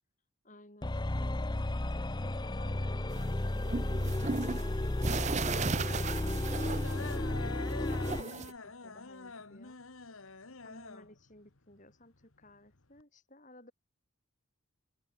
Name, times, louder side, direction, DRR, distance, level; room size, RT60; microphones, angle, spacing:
voice 1, 0.4-6.2 6.9-9.8 10.6-13.7, left 1 dB, 35° left, 7.3 m, -56 dB
sound 1, 0.8-8.3, left 1 dB, 20° left, 0.6 m, -33 dB
sound 2, 3.1-7.4 7.7-8.5, right 4 dB, 30° right, 0.6 m, -36 dB
sound 3, 6.2-13.0, left 4 dB, 70° left, 1.7 m, -48 dB
open air
head